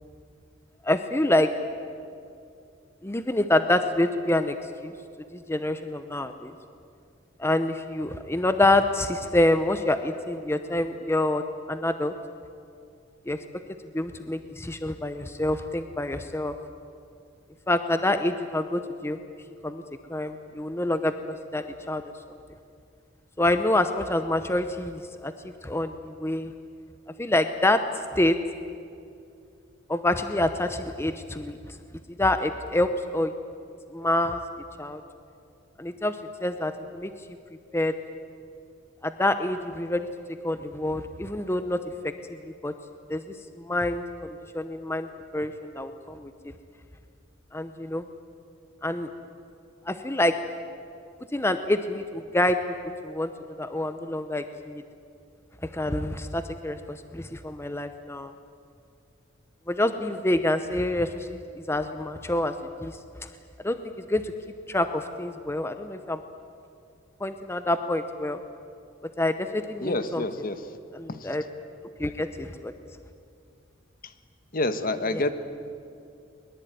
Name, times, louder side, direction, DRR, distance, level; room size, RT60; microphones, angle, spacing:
voice 1, 0.8-1.5 3.0-4.5 4.8-4.9 5.3-6.5 7.4-11.4 11.7-12.1 13.3-13.4 13.9-16.6 17.7-19.2 19.6-19.8 20.1-21.1 21.5-22.0 23.4-25.3 25.6-26.5 27.2-27.8 28.1-28.4 29.9-31.6 32.2-33.3 33.9-34.4 34.8-35.0 35.8-36.2 36.4-37.1 37.7-37.9 39.0-40.1 40.4-41.8 42.0-42.1 42.6-42.7 43.1-43.2 43.6-44.0 44.5-45.1 45.3-46.3 47.5-48.0 48.8-49.1 49.9-50.3 51.3-52.6 53.0-53.3 53.6-54.8 55.7-58.3 59.7-61.4 61.7-62.5 62.8-62.9 63.6-63.8 64.1-64.2 64.7-66.2 67.2-68.4 69.2-70.2 70.9-71.4 72.0-72.7 75.1-75.3, left 1 dB, 15° left, 9 dB, 0.8 m, -26 dB
voice 2, 69.8-70.6 74.5-75.3, left 2 dB, 45° left, 11 dB, 1.3 m, -27 dB
22.0 x 21.5 x 9.3 m, 2.4 s
head